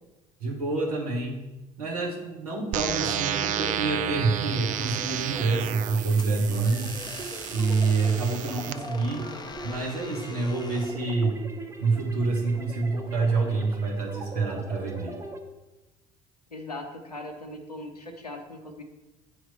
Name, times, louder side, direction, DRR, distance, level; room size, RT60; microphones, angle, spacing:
voice 1, 0.4-1.4 1.8-6.9 7.5-9.3 9.6-11.4 11.8-15.2, right 3 dB, 75° right, -1 dB, 1.2 m, -27 dB
sound 1, 2.7-8.7, right 10 dB, 40° right, 0.4 m, -32 dB
sound 2, 2.9-15.4, right 2 dB, 15° right, 0.7 m, -42 dB
sound 3, 4.8-11.0, left 4 dB, 20° left, 0.5 m, -44 dB
voice 2, 16.5-18.8, left 2 dB, 90° left, 5 dB, 0.7 m, -39 dB
8.4 x 3.0 x 5.5 m, 1.1 s
figure-of-eight pair, 55°, 19 cm